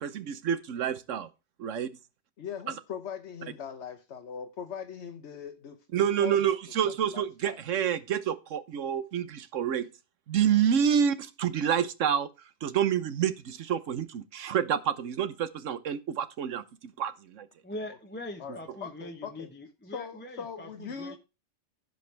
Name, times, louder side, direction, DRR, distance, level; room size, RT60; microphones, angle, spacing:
voice 1, 0.0-1.3 1.6-1.9 5.9-9.9 10.3-12.3 12.6-16.6 17.0-17.5, right 8 dB, 90° right, 1.2 m, -28 dB
voice 2, 2.4-6.5 6.8-7.6 10.8-10.9 17.8-18.0 18.4-19.5 19.8-21.2, left 7 dB, 65° left, 1.2 m, -41 dB
voice 3, 17.6-21.2, left 1 dB, 10° left, 0.9 m, -42 dB
16.0 x 5.3 x 3.3 m
omnidirectional pair, 1.2 m